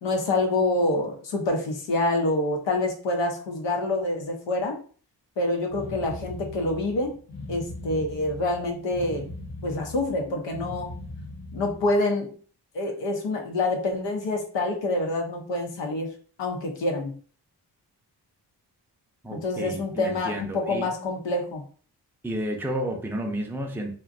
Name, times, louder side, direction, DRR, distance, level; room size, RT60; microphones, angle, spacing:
voice 1, 0.0-4.8 5.4-7.1 7.5-9.3 9.6-11.0 11.5-12.3 12.7-16.1 16.4-17.2 19.3-21.6, left 2 dB, 85° left, 2 dB, 0.7 m, -26 dB
sound 1, 5.7-12.0, left 2 dB, 55° left, 0.7 m, -39 dB
voice 2, 19.2-20.9 22.2-23.9, right 1 dB, 5° right, 2 dB, 0.5 m, -31 dB
2.6 x 2.2 x 2.4 m, 0.42 s
supercardioid pair, 45°, 43 cm